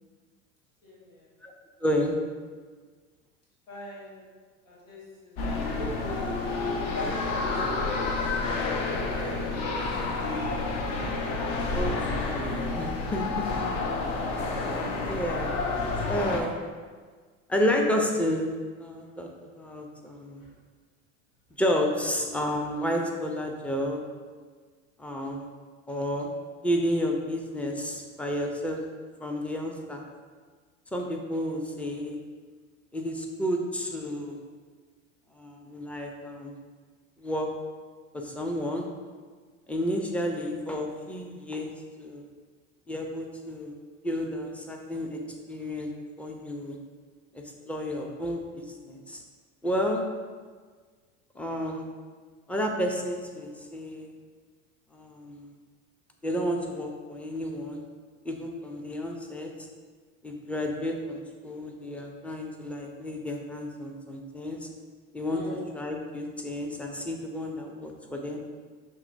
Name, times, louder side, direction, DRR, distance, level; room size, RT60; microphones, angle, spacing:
voice 1, 0.8-1.3 3.7-4.2 4.6-6.3 6.9-10.6 20.4-20.5 65.3-65.6, left 1 dB, 85° left, -7 dB, 1.4 m, -41 dB
voice 2, 1.8-2.2 11.7-13.4 15.0-15.5 16.1-16.6 17.5-18.5 18.8-19.3 19.6-20.4 21.6-24.0 25.0-25.5 25.9-26.3 26.6-28.8 29.2-30.0 30.9-32.2 32.9-34.4 35.3-36.6 37.2-37.5 38.1-38.9 39.7-41.7 42.0-42.3 42.9-43.7 44.0-45.2 45.5-45.9 46.2-46.8 47.3-49.2 49.6-50.1 51.4-51.9 52.5-54.1 54.9-55.5 56.2-57.8 58.2-59.5 60.2-64.7 65.1-65.4 65.7-68.4, equal, 5° left, 2 dB, 0.4 m, -31 dB
sound 1, 5.4-16.4, left 3 dB, 55° left, 0.7 m, -29 dB
6.2 x 2.9 x 2.5 m, 1.5 s
hypercardioid pair, 90°, 39 cm